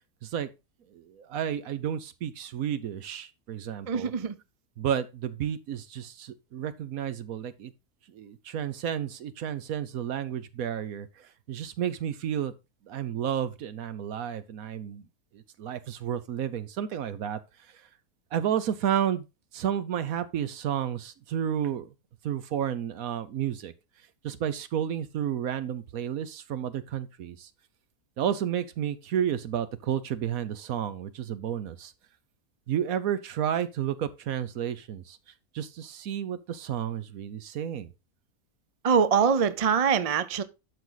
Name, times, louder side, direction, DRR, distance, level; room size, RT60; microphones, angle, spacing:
voice 1, 0.9-4.1 4.8-7.7 8.1-12.5 12.9-15.0 15.3-17.4 17.7-17.8 18.3-19.3 19.5-21.9 22.2-23.7 24.2-27.5 28.2-31.9 32.7-35.2 35.5-37.9, right 9 dB, 65° right, 1.2 m, -31 dB
voice 2, 3.9-4.3 38.8-40.4, right 6 dB, 50° right, 0.4 m, -23 dB
12.0 x 4.9 x 3.9 m
omnidirectional pair, 1.6 m